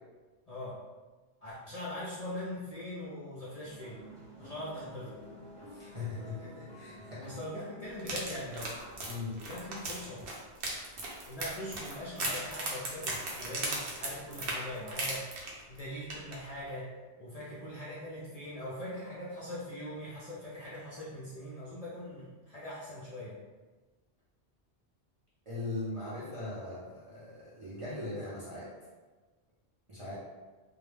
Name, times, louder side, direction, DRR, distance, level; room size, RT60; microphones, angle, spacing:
voice 1, 0.5-0.8 1.4-4.0 4.4-5.2 7.2-8.8 9.4-10.3 11.3-15.3 15.7-16.9 17.2-23.4 30.1-30.2, left 1 dB, 55° left, -8 dB, 0.4 m, -41 dB
sound 1, 3.7-10.7, equal, 10° left, 0.5 m, -52 dB
voice 2, 5.7-7.4 9.1-9.4 25.5-28.7 29.9-30.2, left 2 dB, 50° right, -8 dB, 0.4 m, -40 dB
sound 2, 8.0-15.8 16.1-16.4 16.7-16.8, right 2 dB, 80° right, 0.9 m, -37 dB
2.1 x 2.0 x 3.1 m, 1.3 s
omnidirectional pair, 1.1 m